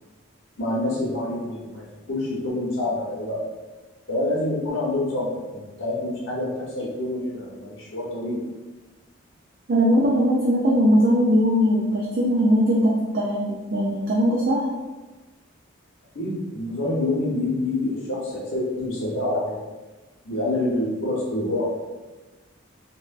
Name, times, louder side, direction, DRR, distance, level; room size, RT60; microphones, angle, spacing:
voice 1, 0.6-3.4 4.1-8.4 16.1-19.6 20.2-21.7, left 1 dB, 70° left, -5 dB, 0.9 m, -27 dB
voice 2, 9.7-14.6, equal, 45° right, -4 dB, 0.4 m, -20 dB
3.2 x 2.2 x 2.4 m, 1.2 s
head